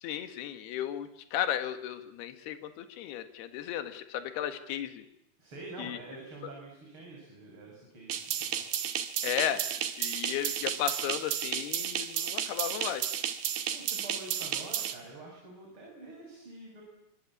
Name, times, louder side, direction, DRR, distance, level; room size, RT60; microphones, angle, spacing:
voice 1, 0.0-5.0 5.8-6.0 9.2-9.6 10.0-13.1, left 11 dB, 60° left, 9 dB, 3.1 m, -34 dB
voice 2, 5.4-8.6 13.7-16.8, right 2 dB, 25° right, -1 dB, 6.6 m, -46 dB
sound 1, 8.1-14.9, right 9 dB, 60° right, 2.9 m, -33 dB
25.5 x 25.5 x 8.6 m, 0.84 s
omnidirectional pair, 5.9 m